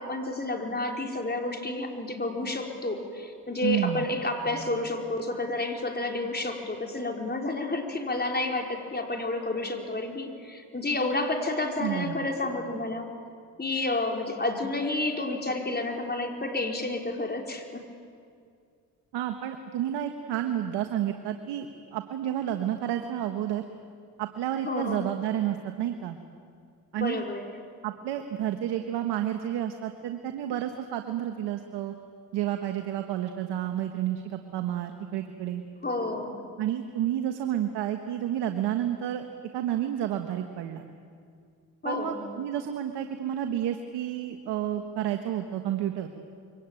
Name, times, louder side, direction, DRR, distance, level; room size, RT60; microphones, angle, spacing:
voice 1, 0.0-13.1 13.6-17.8 24.6-25.1 26.9-27.5 35.8-36.4 41.8-42.2, left 2 dB, 25° left, 2 dB, 5.1 m, -30 dB
voice 2, 3.6-4.0 11.8-12.2 19.1-23.6 24.2-26.2 26.9-27.2 27.8-31.9 32.3-35.6 36.6-39.3 39.5-40.8 41.8-46.1, right 11 dB, 85° right, 6 dB, 1.5 m, -30 dB
27.0 x 23.5 x 9.2 m, 2.3 s
supercardioid pair, 65°, 39 cm